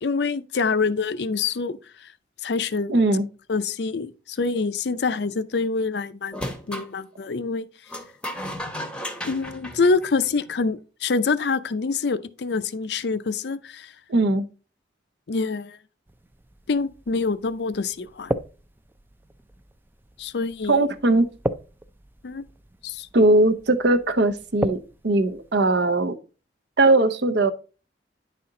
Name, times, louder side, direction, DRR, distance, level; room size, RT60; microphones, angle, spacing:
voice 1, 0.0-2.1 2.4-3.0 3.5-6.4 6.7-7.6 9.2-13.9 15.3-15.8 16.7-18.4 20.2-20.8 22.2-22.4 22.8-23.1, left 4 dB, 65° left, 0.5 m, -26 dB
voice 2, 2.9-3.2 14.1-14.4 20.7-21.3 23.1-24.8 25.0-26.2 26.8-27.5, right 2 dB, 70° right, 0.7 m, -19 dB
sound 1, 6.3-6.9 7.9-10.6, equal, 5° left, 0.8 m, -34 dB
sound 2, 16.1-25.7, right 1 dB, 10° right, 0.4 m, -36 dB
9.7 x 4.3 x 3.8 m
head